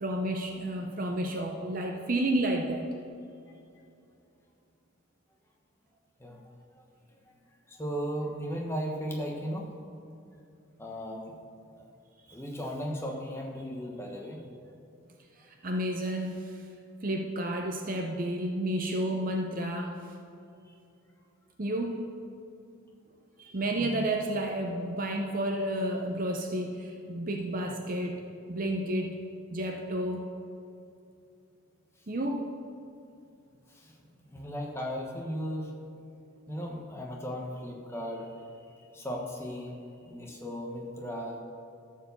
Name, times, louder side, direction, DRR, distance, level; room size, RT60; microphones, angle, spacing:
voice 1, 0.0-2.9 15.6-16.4 17.0-20.0 21.6-22.0 23.4-28.2 28.5-29.1 29.5-30.2 32.1-32.5, right 1 dB, 40° right, 3 dB, 0.7 m, -31 dB
voice 2, 7.7-9.7 10.8-11.3 11.8-11.9 12.3-14.4 20.7-20.8 23.6-24.1 33.7-33.9 34.3-35.7 36.5-38.4 38.9-39.8 40.0-41.4, equal, 10° left, -1 dB, 1.2 m, -36 dB
13.0 x 4.7 x 7.0 m, 2.6 s
head